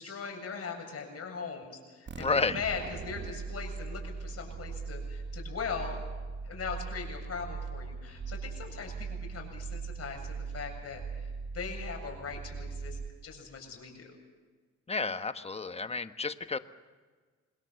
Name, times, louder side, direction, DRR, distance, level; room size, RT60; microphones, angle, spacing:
voice 1, 0.0-6.0 6.4-14.2, left 5 dB, 55° left, 2 dB, 7.8 m, -40 dB
sound 1, 2.1-13.5, right 5 dB, 35° right, 1.2 m, -40 dB
voice 2, 2.2-2.6 14.9-16.6, left 4 dB, 20° left, 10 dB, 1.2 m, -31 dB
27.0 x 21.0 x 7.1 m, 1.4 s
cardioid pair, 90°, 30 cm